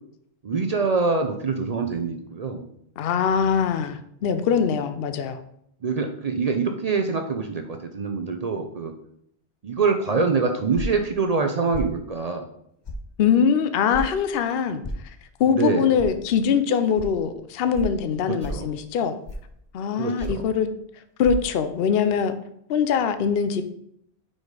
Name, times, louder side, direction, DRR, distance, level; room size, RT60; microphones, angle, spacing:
voice 1, 0.4-2.6 5.8-8.9 9.6-12.4 15.5-15.9 18.2-18.6 20.0-20.4, right 4 dB, 45° right, 5 dB, 0.5 m, -25 dB
voice 2, 3.0-5.4 13.2-19.2 19.7-20.7 21.2-22.3 22.7-23.6, left 7 dB, 65° left, 9 dB, 0.7 m, -23 dB
sound 1, 10.7-11.1 11.7-11.9 12.8-13.0 13.9-14.1 14.8-15.0 16.0-16.1 16.9-17.1 17.7-18.0 18.4-18.7 19.2-19.5 20.2-20.5 21.2-21.3, left 1 dB, 40° left, 0.4 m, -32 dB
5.0 x 4.1 x 4.7 m, 0.72 s
omnidirectional pair, 1.1 m